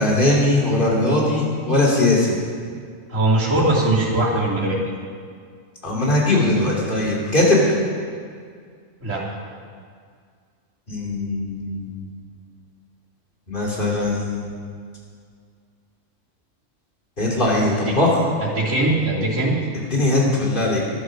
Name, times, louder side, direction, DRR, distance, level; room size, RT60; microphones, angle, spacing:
voice 1, 0.0-2.4 5.8-7.8 10.9-12.1 13.5-14.5 17.2-18.2 19.9-20.8, left 2 dB, 45° left, -4 dB, 3.1 m, -20 dB
voice 2, 3.1-4.8 9.0-9.2 17.8-17.9 18.4-19.5, right 2 dB, 90° right, -7 dB, 3.4 m, -20 dB
13.0 x 11.5 x 6.3 m, 2.1 s
omnidirectional pair, 1.3 m